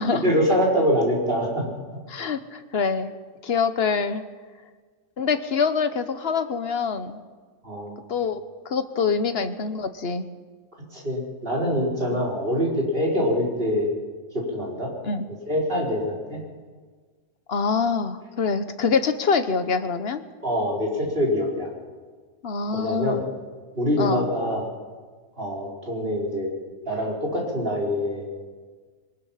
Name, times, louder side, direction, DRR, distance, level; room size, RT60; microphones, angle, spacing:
voice 1, 0.2-1.7 7.6-7.9 10.9-13.9 14.3-14.9 15.5-16.4 20.4-21.7 22.7-23.3 23.7-24.6 25.4-26.5 26.9-28.2, equal, 35° right, -3 dB, 4.8 m, -24 dB
voice 2, 2.1-3.1 3.4-4.2 5.2-7.2 8.1-10.3 12.1-12.2 15.0-15.2 17.5-20.2 22.4-23.2 24.0-24.3, left 5 dB, 45° left, 10 dB, 1.2 m, -25 dB
22.5 x 20.0 x 5.8 m, 1.5 s
omnidirectional pair, 1.6 m